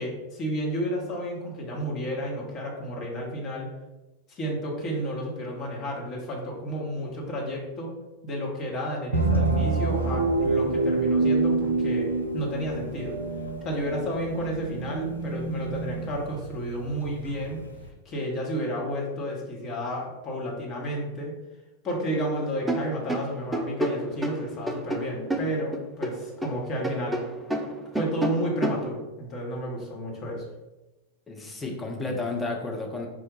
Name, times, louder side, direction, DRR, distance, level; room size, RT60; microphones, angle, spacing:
voice 1, 0.0-3.7 4.3-7.9 8.2-12.1 12.3-13.1 13.6-17.6 18.0-21.3 21.8-27.2 27.9-30.4, equal, 30° left, -2 dB, 1.2 m, -31 dB
sound 1, 9.1-17.9, right 3 dB, 80° right, 0.5 m, -27 dB
sound 2, 22.6-26.6 26.8-28.9, right 1 dB, 10° right, 0.4 m, -29 dB
voice 2, 31.3-33.1, left 3 dB, 10° left, 0 dB, 0.8 m, -32 dB
4.8 x 2.5 x 3.8 m, 1.1 s
figure-of-eight pair, 90°, 0 cm